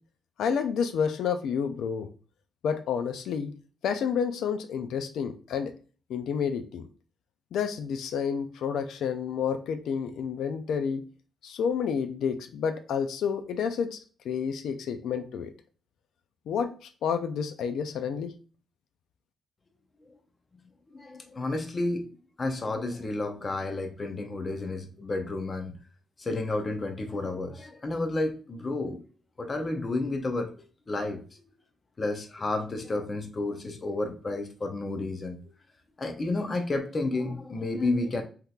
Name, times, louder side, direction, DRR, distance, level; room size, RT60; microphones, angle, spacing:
voice 1, 0.4-2.1 2.6-3.5 3.8-5.7 6.1-6.8 7.5-11.0 11.4-14.0 14.3-15.5 16.5-16.7 17.0-18.3, left 7 dB, 85° left, 0.3 m, -29 dB
voice 2, 20.9-22.1 22.4-25.7 26.2-29.0 29.4-30.5 30.9-31.2 32.0-35.4 36.0-38.2, left 2 dB, 30° left, 0.6 m, -31 dB
3.6 x 2.8 x 2.3 m
cardioid pair, 135°, 0 cm